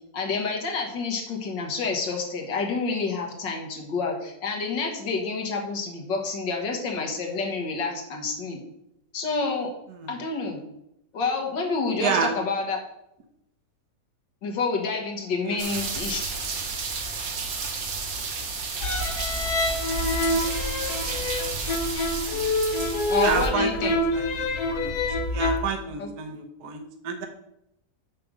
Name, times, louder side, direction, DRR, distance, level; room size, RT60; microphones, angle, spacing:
voice 1, 0.1-8.6 9.1-9.7 10.1-10.6 11.1-12.8 14.4-16.2 23.1-23.9 26.0-26.1, left 4 dB, 80° left, 2 dB, 2.2 m, -28 dB
voice 2, 12.0-12.3 15.4-15.6 23.1-24.9 25.3-27.3, right 5 dB, 65° right, 4 dB, 1.5 m, -29 dB
sound 1, 15.6-23.5, right 4 dB, 80° right, 1.9 m, -31 dB
sound 2, 18.8-25.6, left 2 dB, 65° left, 1.4 m, -26 dB
6.9 x 5.1 x 6.3 m, 0.81 s
omnidirectional pair, 1.9 m